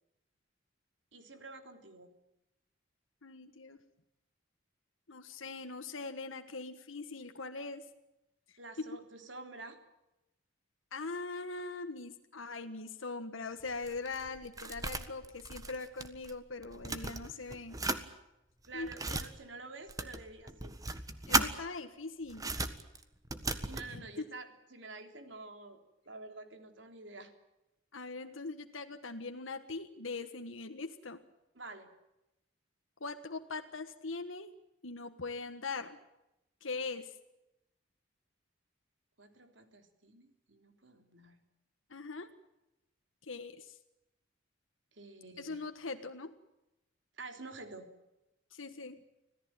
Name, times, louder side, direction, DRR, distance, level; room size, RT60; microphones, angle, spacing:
voice 1, 1.1-2.1 8.6-9.8 18.7-20.8 23.5-25.8 26.1-27.3 31.6-31.9 39.2-41.4 44.9-45.6 47.2-47.9, right 3 dB, 70° right, 6 dB, 3.6 m, -49 dB
voice 2, 3.2-3.8 5.1-7.9 8.5-9.0 10.9-17.8 18.7-18.9 21.3-22.5 23.9-24.2 27.9-31.2 33.0-34.5 34.8-36.0 36.6-37.2 41.9-42.3 43.2-43.8 45.4-46.3 48.5-49.0, left 3 dB, 85° left, 6 dB, 1.5 m, -41 dB
sound 1, 13.6-16.4 16.6-18.0 18.6-19.3 19.9-21.5 22.3-23.9, right 3 dB, 20° right, 1.5 m, -36 dB
26.0 x 17.5 x 9.1 m, 0.93 s
head